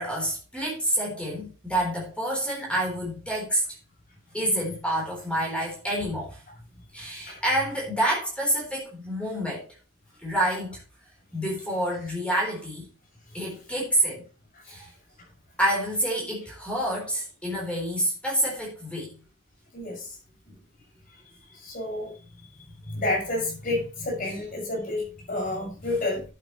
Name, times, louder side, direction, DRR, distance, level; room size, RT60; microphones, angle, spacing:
voice 1, 0.0-3.6 4.3-6.4 6.9-9.6 10.2-10.8 11.3-12.9 13.3-14.2 14.7-14.9 15.6-19.2 22.8-23.0, right 1 dB, 5° left, -3 dB, 3.9 m, -28 dB
voice 2, 19.7-20.1 21.5-22.1 22.9-26.2, left 2 dB, 40° left, -2 dB, 6.4 m, -30 dB
11.0 x 8.6 x 3.1 m, 0.34 s
head